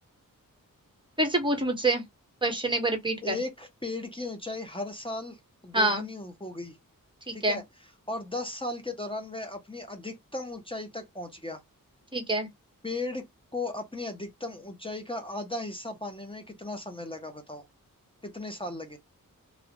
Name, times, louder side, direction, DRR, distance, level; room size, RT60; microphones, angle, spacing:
voice 1, 1.2-2.0 2.4-3.3 5.7-6.0 7.3-7.6 12.1-12.5, right 2 dB, 15° right, 1.2 m, -26 dB
voice 2, 3.2-5.4 5.6-6.8 7.3-7.6 8.1-11.6 12.8-13.2 13.5-17.6 18.2-19.0, left 2 dB, 15° left, 0.7 m, -36 dB
3.1 x 2.4 x 2.9 m
wide cardioid pair, 80°, 34 cm